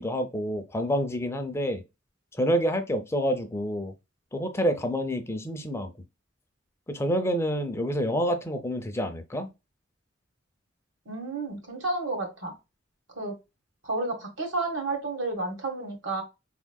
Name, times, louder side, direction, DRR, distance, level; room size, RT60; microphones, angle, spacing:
voice 1, 0.0-1.8 2.4-3.9 4.3-5.9 6.9-9.5, equal, 15° left, 0.5 m, -28 dB
voice 2, 11.0-12.5 13.2-13.3 13.8-16.2, right 2 dB, 75° right, 1.5 m, -31 dB
4.5 x 3.6 x 2.2 m
head